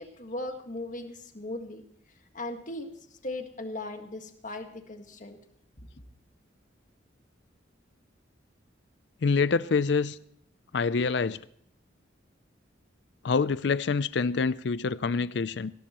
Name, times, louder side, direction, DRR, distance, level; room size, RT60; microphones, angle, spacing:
voice 1, 0.0-1.8 2.3-5.4, left 2 dB, 40° left, 1.7 m, -38 dB
voice 2, 9.2-10.2 10.7-11.4 13.2-15.7, left 4 dB, 65° left, 0.5 m, -26 dB
18.5 x 17.0 x 3.0 m
head